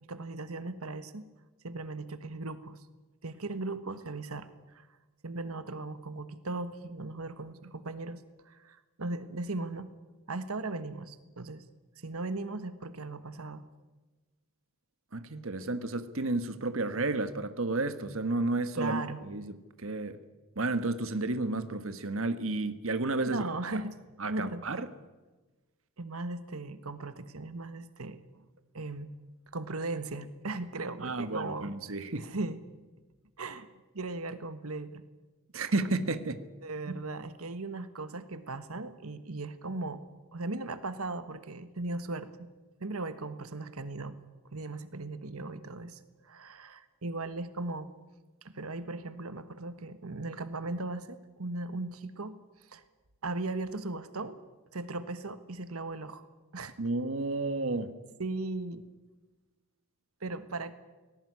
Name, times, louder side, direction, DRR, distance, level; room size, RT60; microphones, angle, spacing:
voice 1, 0.1-1.3 1.6-2.8 3.2-4.9 5.2-9.9 10.3-11.6 12.0-13.6 18.7-19.2 23.2-23.9 24.3-24.8 26.0-28.4 28.7-29.1 29.5-31.7 32.2-32.6 33.4-33.7 33.9-35.0 36.6-40.0 40.3-42.5 42.8-44.2 44.5-47.9 48.4-52.8 53.2-54.4 54.7-56.2 56.5-56.7 58.2-58.9 60.2-60.7, right 2 dB, 90° right, 1.4 m, -38 dB
voice 2, 15.1-20.2 20.6-23.4 24.2-24.9 31.0-32.3 35.5-36.3 36.9-37.0 56.8-57.9, right 2 dB, 65° right, 1.5 m, -32 dB
19.0 x 18.0 x 9.7 m
head